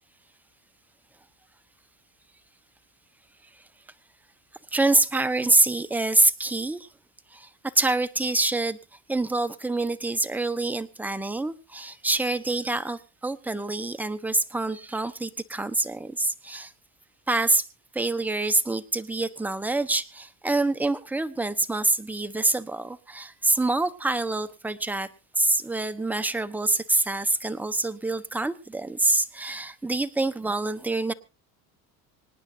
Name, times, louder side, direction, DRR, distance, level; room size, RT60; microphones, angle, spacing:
voice 1, 4.7-6.9 7.3-7.5 7.7-8.8 9.1-16.7 17.3-17.6 17.9-25.1 25.4-31.1, right 2 dB, 5° right, 10 dB, 1.0 m, -26 dB
26.0 x 9.8 x 2.7 m, 0.32 s
supercardioid pair, 100°, 40 cm